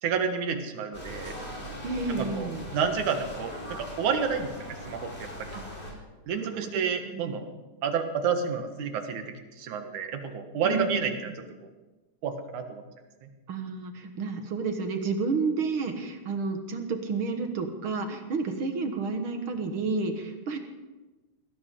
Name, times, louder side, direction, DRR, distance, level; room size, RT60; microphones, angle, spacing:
voice 1, 0.0-1.3 2.1-5.5 6.3-7.4 7.8-11.7 12.2-12.8 13.2-13.3, right 6 dB, 85° right, 6 dB, 2.9 m, -30 dB
sound 1, 0.9-5.9, equal, 20° left, 3.9 m, -40 dB
voice 2, 1.8-2.7 5.5-5.6 5.9-6.0 6.4-7.3 10.6-11.1 13.5-20.6, right 4 dB, 50° right, 5 dB, 2.0 m, -31 dB
19.5 x 17.0 x 3.8 m, 1.2 s
omnidirectional pair, 3.4 m